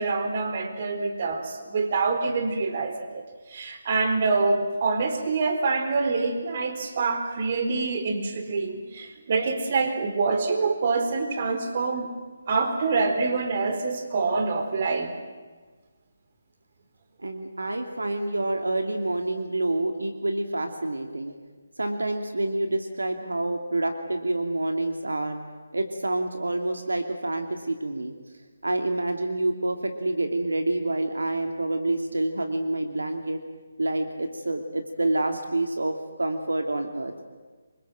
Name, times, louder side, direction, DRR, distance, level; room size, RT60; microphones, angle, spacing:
voice 1, 0.0-12.1 12.5-15.1, right 4 dB, 45° right, 6 dB, 4.2 m, -26 dB
voice 2, 17.2-21.3 21.8-25.4 25.7-28.2 28.6-33.4 33.8-37.1, right 2 dB, 90° right, 5 dB, 2.8 m, -27 dB
27.0 x 24.5 x 7.7 m, 1.4 s
figure-of-eight pair, 155°, 0 cm